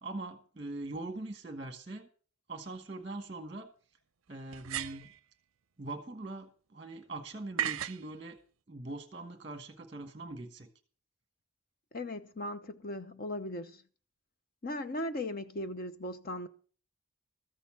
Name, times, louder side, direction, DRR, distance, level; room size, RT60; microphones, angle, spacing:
voice 1, 0.0-2.1 2.5-3.7 4.3-5.1 5.8-8.4 8.7-10.7, right 2 dB, 25° right, 1.3 m, -42 dB
sound 1, 2.6-2.7 4.5-5.2 7.6-8.0, right 10 dB, 65° right, 0.5 m, -35 dB
voice 2, 11.9-13.8 14.6-16.5, left 1 dB, 40° left, 0.8 m, -38 dB
13.5 x 7.0 x 7.1 m
head